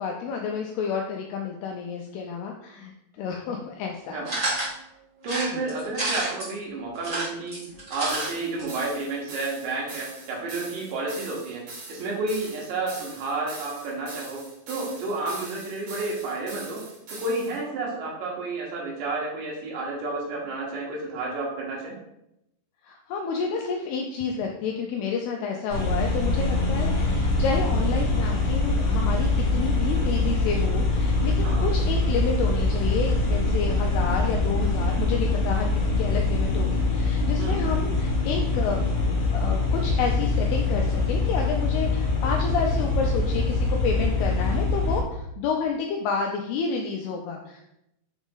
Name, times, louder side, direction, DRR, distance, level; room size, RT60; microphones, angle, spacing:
voice 1, 0.0-4.5 5.5-5.6 22.8-38.8 39.2-47.7, left 5 dB, 85° left, 1 dB, 2.3 m, -30 dB
sound 1, 4.2-4.7 5.2-6.5 6.9-8.3 8.6-8.7 8.9-9.0, right 2 dB, 25° right, 1.6 m, -29 dB
voice 2, 5.2-7.6 7.9-11.6 11.9-14.4 14.7-16.8 17.1-21.9 31.4-31.7 37.4-37.6, right 3 dB, 75° right, -3 dB, 3.6 m, -31 dB
sound 2, 8.1-17.6, right 3 dB, 60° right, 3.6 m, -42 dB
sound 3, 25.7-45.0, left 3 dB, 60° left, 1.7 m, -24 dB
7.1 x 4.0 x 3.8 m, 0.84 s
omnidirectional pair, 5.1 m